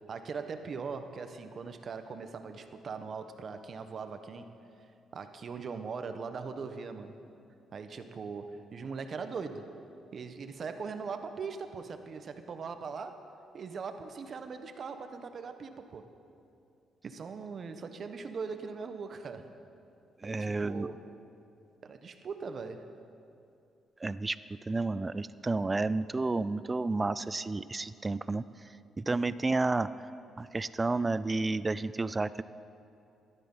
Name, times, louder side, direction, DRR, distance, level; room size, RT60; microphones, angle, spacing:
voice 1, 0.0-4.5 5.1-7.2 7.7-9.6 10.1-13.2 13.5-16.1 17.0-19.5 20.2-21.0 21.8-22.8, right 5 dB, 50° right, 8 dB, 1.1 m, -40 dB
voice 2, 20.2-20.9 24.0-24.4 24.7-28.4 29.0-32.4, right 3 dB, 25° right, 16 dB, 0.4 m, -31 dB
14.5 x 12.0 x 5.5 m, 2.6 s
cardioid pair, 90°, 0 cm